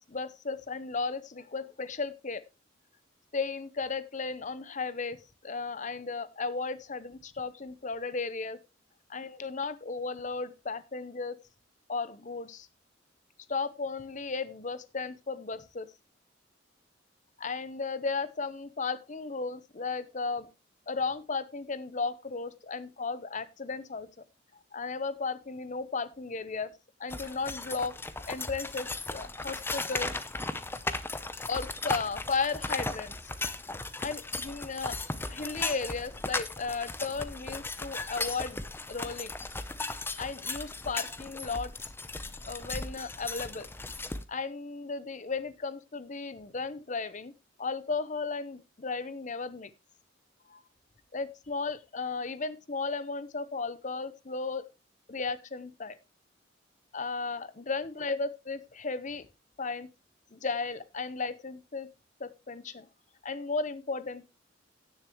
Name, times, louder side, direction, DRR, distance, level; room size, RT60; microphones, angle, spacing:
voice 1, 0.0-2.4 3.3-8.6 9.1-11.4 11.9-12.7 13.5-15.9 17.4-20.5 20.9-24.1 24.7-26.7 27.0-28.0 28.3-30.2 31.5-33.2 34.0-38.6 38.9-39.3 40.2-41.7 42.5-43.7 44.3-47.3 47.6-49.7 50.5-50.6 51.1-54.6 55.1-56.0 56.9-59.3 59.6-59.9 60.3-61.9 62.2-62.9 63.2-64.2, left 4 dB, 40° left, 14 dB, 0.8 m, -35 dB
sound 1, 27.1-44.2, left 2 dB, 10° left, 0.6 m, -36 dB
17.0 x 6.8 x 3.0 m, 0.25 s
head